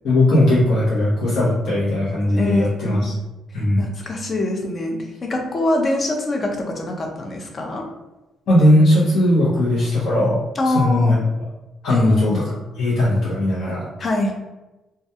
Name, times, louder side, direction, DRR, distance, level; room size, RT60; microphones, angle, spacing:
voice 1, 0.0-3.1 3.5-3.9 8.5-11.2 11.8-12.4 12.8-13.9, left 1 dB, 75° left, -9 dB, 0.8 m, -18 dB
voice 2, 2.4-3.0 3.5-7.8 10.6-11.2 11.9-12.4 14.0-14.3, left 2 dB, 40° left, 2 dB, 0.5 m, -24 dB
2.3 x 2.2 x 2.7 m, 1.0 s
cardioid pair, 90°, 0 cm